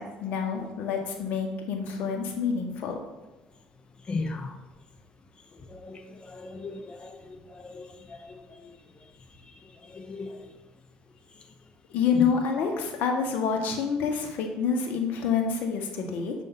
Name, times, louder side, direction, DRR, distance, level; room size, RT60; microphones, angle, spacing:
voice 1, 0.0-3.0 11.9-16.3, left 6 dB, 70° left, 1.1 m, -27 dB
voice 2, 4.1-4.5 5.7-6.0 6.3-7.1 7.6-7.9 8.3-8.4 9.9-10.4 12.1-12.3, left 3 dB, 35° left, 0.9 m, -35 dB
6.9 x 2.7 x 5.6 m
supercardioid pair, 80°, 3 cm